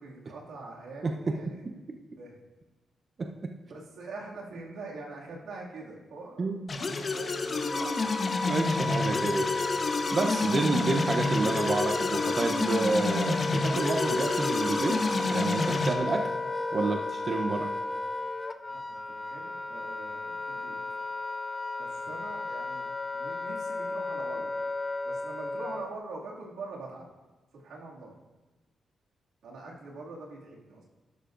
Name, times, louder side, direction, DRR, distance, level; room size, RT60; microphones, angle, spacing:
voice 1, 0.0-1.7 2.2-2.4 3.7-8.1 10.4-10.8 18.7-20.8 21.8-24.6 25.0-27.1 27.5-28.1 29.4-30.8, right 3 dB, 90° right, -3 dB, 2.3 m, -44 dB
voice 2, 6.4-6.7 8.4-9.5 10.1-16.3 16.7-17.7, right 3 dB, 40° right, 4 dB, 0.7 m, -29 dB
sound 1, 6.7-15.9, left 3 dB, 40° left, 1.0 m, -29 dB
Wind instrument woodwind instrument, 7.1-26.0, left 2 dB, 25° left, 0.4 m, -33 dB
12.0 x 11.5 x 2.6 m, 1.2 s
cardioid pair, 110°, 0 cm